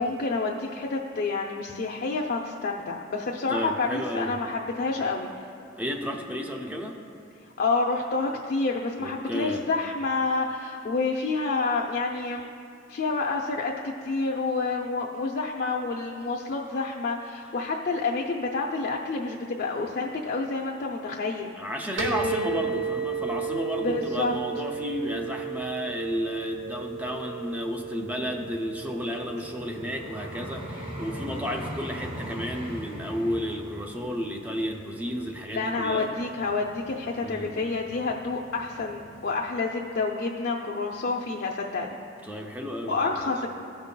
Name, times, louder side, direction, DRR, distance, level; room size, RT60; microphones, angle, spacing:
voice 1, 0.0-5.3 7.6-12.5 12.9-21.5 22.0-22.4 23.8-24.4 35.5-42.0 42.8-43.5, left 3 dB, 50° left, -1 dB, 0.4 m, -28 dB
voice 2, 3.5-4.4 5.8-7.0 9.0-9.6 21.6-36.1 37.2-37.6 42.2-43.5, equal, 10° right, 2 dB, 0.4 m, -32 dB
sound 1, 22.0-39.3, right 6 dB, 75° right, 0.8 m, -37 dB
Vehicle, 28.0-37.1 37.7-37.9, equal, 25° right, 1.5 m, -41 dB
14.5 x 5.2 x 2.2 m, 2.5 s
head